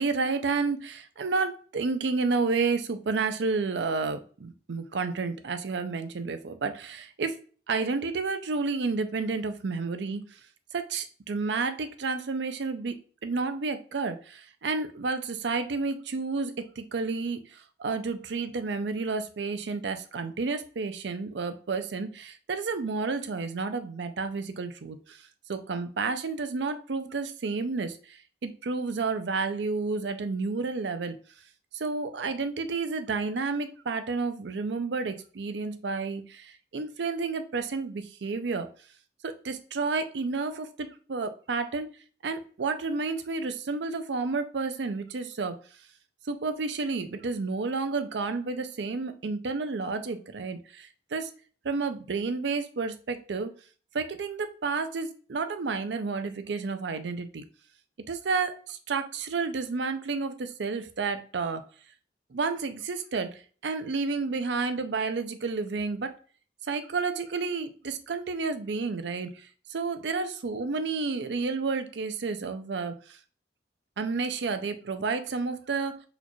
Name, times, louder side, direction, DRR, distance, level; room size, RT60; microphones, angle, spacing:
voice 1, 0.0-7.4 7.7-10.2 10.7-12.9 13.2-25.2 25.5-31.2 31.7-38.7 39.2-41.9 42.2-45.6 46.3-51.3 51.6-53.5 53.9-57.4 58.1-61.6 62.3-66.1 66.7-73.2 74.0-76.0, right 4 dB, 70° right, 9 dB, 0.5 m, -31 dB
4.1 x 2.4 x 3.0 m, 0.41 s
head